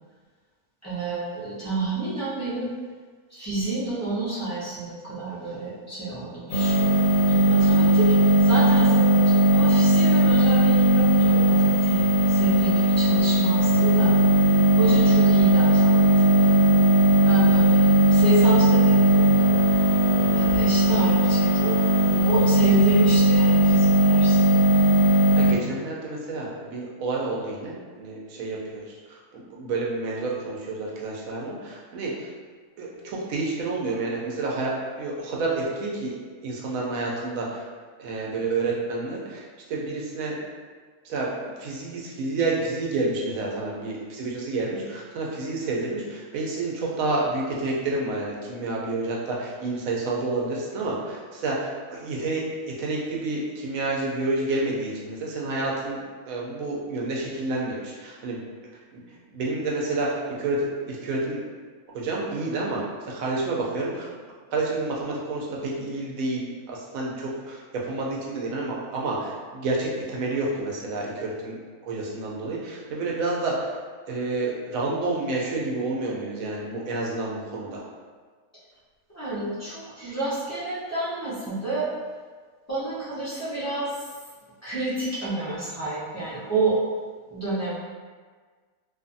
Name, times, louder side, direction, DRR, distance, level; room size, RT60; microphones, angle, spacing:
voice 1, 0.8-2.7 3.3-7.0 7.3-14.2 14.8-16.6 17.2-19.6 20.3-21.8 22.2-24.6 79.1-81.9 82.7-84.1 84.6-86.8 87.3-87.8, right 2 dB, 20° left, -12 dB, 0.4 m, -29 dB
sound 1, 6.5-25.5, right 1 dB, 90° left, 1.2 m, -18 dB
voice 2, 20.1-20.5 25.3-32.3 32.8-36.1 36.4-37.6 38.0-39.4 39.7-40.4 41.0-56.0 56.3-58.4 58.9-59.0 59.3-61.4 61.9-64.1 64.5-71.5 71.8-73.7 74.1-77.8, right 2 dB, 70° right, -3 dB, 0.9 m, -29 dB
2.5 x 2.4 x 2.6 m, 1.5 s
omnidirectional pair, 1.6 m